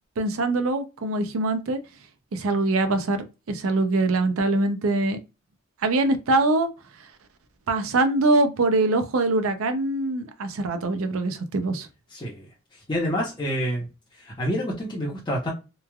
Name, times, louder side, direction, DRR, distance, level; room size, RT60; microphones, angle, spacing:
voice 1, 0.2-1.8 2.3-5.2 5.8-6.7 7.7-11.9, right 2 dB, 75° right, 0.5 m, -23 dB
voice 2, 12.1-13.9 14.2-15.5, equal, 20° left, 0.7 m, -28 dB
3.1 x 2.2 x 2.3 m
head